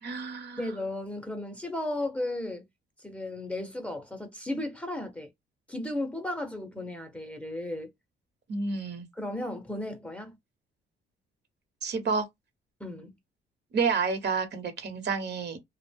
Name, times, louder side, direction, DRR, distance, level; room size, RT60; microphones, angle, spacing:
voice 1, 0.0-0.6 8.5-9.1 11.8-12.2 13.7-15.6, right 5 dB, 60° right, 1.0 m, -29 dB
voice 2, 0.6-2.6 3.0-5.3 5.7-7.9 9.2-10.4 12.8-13.1, left 1 dB, 5° left, 0.7 m, -35 dB
2.4 x 2.1 x 3.4 m
cardioid pair, 90°, 20 cm